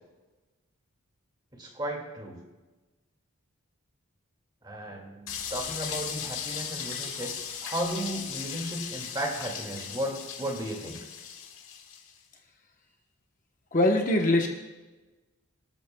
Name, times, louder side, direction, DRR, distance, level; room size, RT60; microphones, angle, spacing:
voice 1, 1.5-2.3 4.6-11.0, right 1 dB, 20° right, 1 dB, 2.1 m, -35 dB
sound 1, 5.3-12.1, left 7 dB, 70° left, 1.9 m, -37 dB
voice 2, 13.7-14.5, left 1 dB, 35° left, 2 dB, 1.0 m, -22 dB
24.5 x 12.5 x 2.3 m, 1.2 s
head